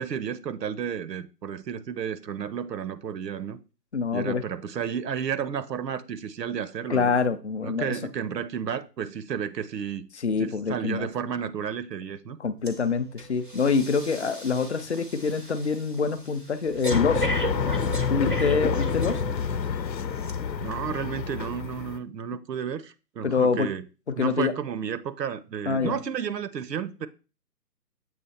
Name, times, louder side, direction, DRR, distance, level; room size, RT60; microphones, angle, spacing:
voice 1, 0.0-3.6 4.1-7.2 7.6-10.1 10.4-12.4 20.6-23.9 24.2-27.1, right 8 dB, 80° right, 0.7 m, -32 dB
voice 2, 3.9-4.4 6.9-8.0 10.2-11.1 12.4-17.3 18.1-19.2 23.2-23.7 24.1-24.5 25.7-26.0, left 5 dB, 45° left, 0.5 m, -25 dB
Breathing, 12.7-12.8 13.2-19.6 20.2-20.3, right 1 dB, 35° right, 0.4 m, -35 dB
sound 1, 16.9-22.0, left 7 dB, 85° left, 0.8 m, -28 dB
7.3 x 3.1 x 4.2 m
hypercardioid pair, 160°, 50 cm